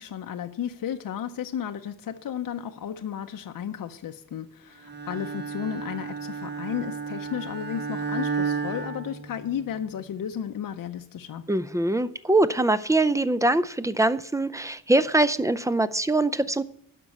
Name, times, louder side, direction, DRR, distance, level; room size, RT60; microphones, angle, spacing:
voice 1, 0.0-11.5, left 9 dB, 70° left, 0.7 m, -33 dB
Bowed string instrument, 4.8-9.8, right 5 dB, 30° right, 1.5 m, -32 dB
voice 2, 11.5-16.6, right 2 dB, 10° right, 0.4 m, -23 dB
12.0 x 5.3 x 8.6 m
wide cardioid pair, 135°, 35 cm